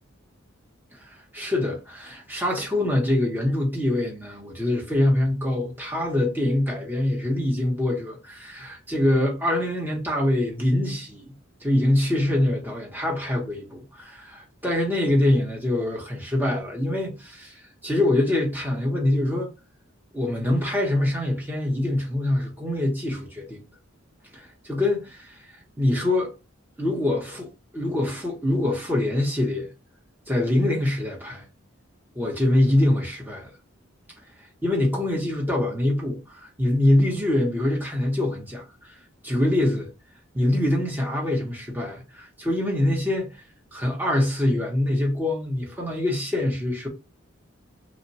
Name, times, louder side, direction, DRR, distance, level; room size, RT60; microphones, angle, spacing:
voice 1, 1.3-11.3 11.6-13.6 14.0-19.5 20.1-23.6 24.3-25.4 25.8-26.3 26.8-27.5 27.7-29.7 30.3-31.4 32.1-33.5 34.6-38.9 39.2-39.9 40.3-43.3 43.7-46.9, left 1 dB, 10° right, 0.6 m, -24 dB
3.0 x 2.1 x 2.6 m
head